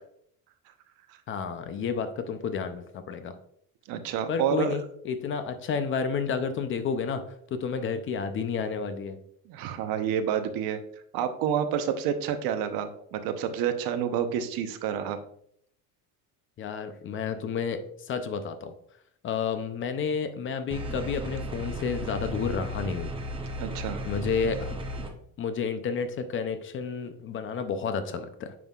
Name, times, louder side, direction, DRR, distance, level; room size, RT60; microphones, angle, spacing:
voice 1, 1.3-3.4 4.3-9.2 16.6-18.7 19.2-23.1 24.1-24.8 25.4-28.5, left 6 dB, 35° left, 10 dB, 0.5 m, -31 dB
voice 2, 3.9-4.7 9.5-10.8 11.1-15.2 23.6-24.0, right 8 dB, 75° right, 8 dB, 0.8 m, -29 dB
sound 1, 20.7-25.1, equal, 15° right, 0.7 m, -35 dB
9.3 x 5.4 x 2.4 m, 0.68 s
cardioid pair, 155°, 36 cm